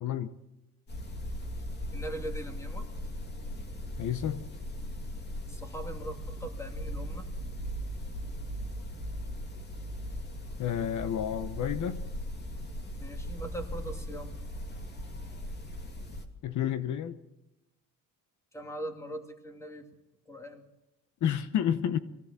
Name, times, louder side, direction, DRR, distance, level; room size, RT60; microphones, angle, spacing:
voice 1, 0.0-0.3 4.0-4.4 10.6-12.0 16.4-17.2 21.2-22.0, left 9 dB, 65° left, 11 dB, 1.1 m, -30 dB
sound 1, 0.9-16.2, equal, 30° left, 2.6 m, -38 dB
voice 2, 1.9-2.9 5.5-7.3 13.0-14.3 18.5-19.9 20.3-20.6, right 1 dB, 10° left, 5 dB, 2.6 m, -41 dB
23.0 x 17.0 x 7.4 m, 0.94 s
cardioid pair, 155°, 32 cm